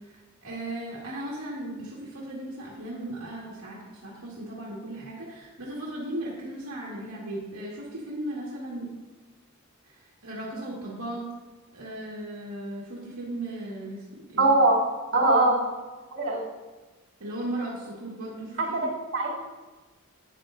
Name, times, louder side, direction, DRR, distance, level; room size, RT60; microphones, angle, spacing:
voice 1, 0.0-8.9 9.8-11.3 11.7-14.5 17.2-18.8, right 1 dB, 85° right, -6 dB, 1.9 m, -36 dB
voice 2, 14.4-14.8 15.1-15.5 16.1-16.4 18.6-19.3, right 2 dB, 65° right, -4 dB, 3.0 m, -22 dB
12.0 x 9.3 x 2.7 m, 1.2 s
head